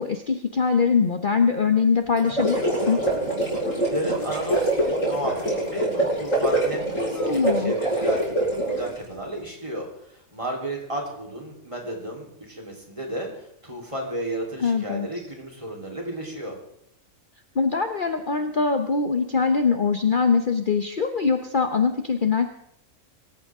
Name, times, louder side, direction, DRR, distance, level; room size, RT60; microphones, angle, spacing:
voice 1, 0.0-3.0 7.1-7.7 14.6-15.1 17.5-22.5, left 5 dB, 40° left, 6 dB, 1.0 m, -22 dB
sound 1, 2.2-9.0, right 1 dB, 70° left, 8.0 m, -24 dB
voice 2, 3.8-16.6, right 1 dB, 20° right, -1 dB, 3.8 m, -33 dB
25.0 x 14.5 x 3.7 m, 0.72 s
omnidirectional pair, 1.4 m